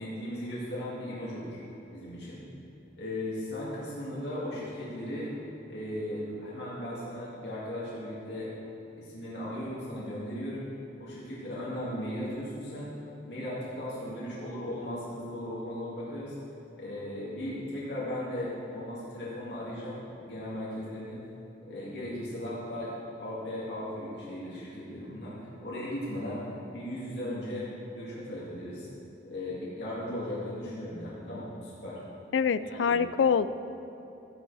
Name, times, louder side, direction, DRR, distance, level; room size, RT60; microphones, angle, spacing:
voice 1, 0.0-1.6 1.9-2.4 3.0-5.3 5.7-8.5 9.0-10.7 11.0-12.9 13.2-16.4 16.8-21.2 21.7-25.3 25.6-26.4 26.7-27.6 27.9-28.9 29.3-32.0 32.7-33.0, left 1 dB, 65° left, -8 dB, 2.2 m, -37 dB
voice 2, 32.3-33.5, left 6 dB, 80° left, 14 dB, 0.4 m, -25 dB
14.0 x 10.5 x 3.4 m, 2.9 s
head